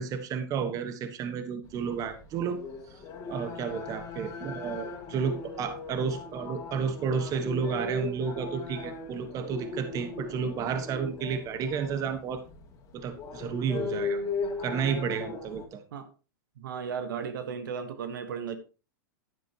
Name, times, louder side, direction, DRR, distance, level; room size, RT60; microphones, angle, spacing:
voice 1, 0.0-2.6 3.3-12.4 12.9-14.2 14.6-15.8, right 6 dB, 30° right, 1.4 m, -31 dB
sound 1, 1.6-15.6, left 3 dB, 30° left, 2.4 m, -38 dB
voice 2, 16.6-18.6, right 6 dB, 75° right, 1.4 m, -35 dB
11.0 x 9.3 x 3.0 m
hypercardioid pair, 120°, 11 cm